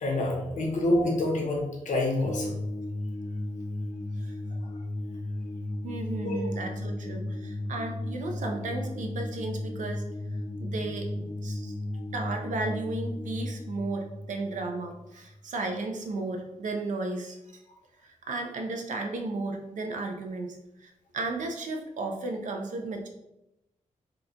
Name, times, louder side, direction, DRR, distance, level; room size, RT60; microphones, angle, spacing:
voice 1, 0.0-2.5 6.2-6.4, left 1 dB, 70° left, -1 dB, 0.8 m, -27 dB
sound 1, 2.3-15.4, left 1 dB, 30° left, 0.4 m, -35 dB
voice 2, 5.8-10.0 10.5-11.7 12.1-17.6 18.0-23.1, right 2 dB, 70° right, 3 dB, 0.5 m, -34 dB
2.9 x 2.1 x 3.7 m, 0.90 s
wide cardioid pair, 155°, 13 cm